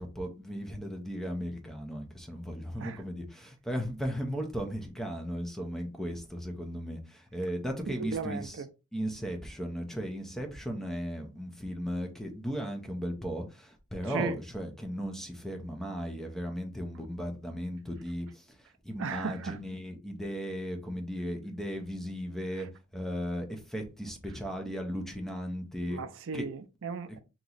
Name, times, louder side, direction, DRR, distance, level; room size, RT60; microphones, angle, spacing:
voice 1, 0.0-8.6 8.9-22.7 22.9-26.0 26.3-26.4 27.1-27.2, equal, ahead, 0.7 m, -36 dB
voice 2, 7.9-8.7 14.0-14.4 19.0-19.6 25.9-27.2, right 5 dB, 65° right, 0.4 m, -36 dB
3.0 x 2.9 x 3.9 m
head